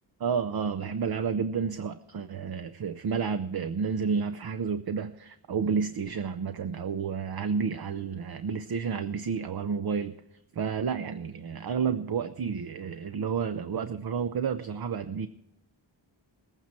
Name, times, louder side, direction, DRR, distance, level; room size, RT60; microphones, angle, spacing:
voice 1, 0.2-10.1 10.6-15.3, right 6 dB, 55° right, 10 dB, 0.6 m, -30 dB
20.0 x 9.0 x 4.4 m, 0.78 s
wide cardioid pair, 100°, 46 cm